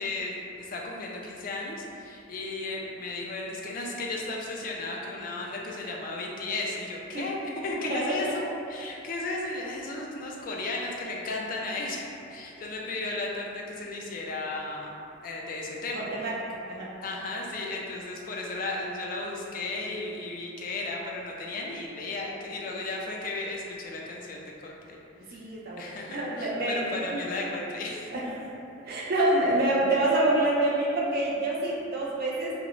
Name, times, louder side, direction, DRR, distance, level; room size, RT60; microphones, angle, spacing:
voice 1, 0.0-7.3 7.6-8.4 8.7-12.0 12.3-14.9 15.2-16.1 17.0-25.4 25.8-28.1, left 2 dB, 45° left, -2 dB, 0.3 m, -34 dB
voice 2, 7.9-8.4 12.6-12.7 15.9-16.3 16.7-16.9 25.3-27.2 28.1-28.5 28.8-32.5, right 1 dB, 50° right, -4 dB, 0.4 m, -27 dB
2.4 x 2.0 x 2.9 m, 2.7 s
head